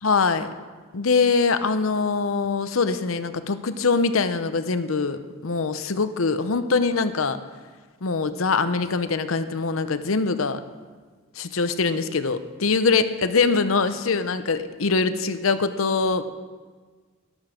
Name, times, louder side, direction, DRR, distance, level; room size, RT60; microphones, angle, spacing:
voice 1, 0.0-0.5 0.9-7.4 8.0-10.6 11.4-16.2, left 4 dB, 85° left, 11 dB, 0.8 m, -23 dB
13.5 x 12.0 x 5.1 m, 1.5 s
head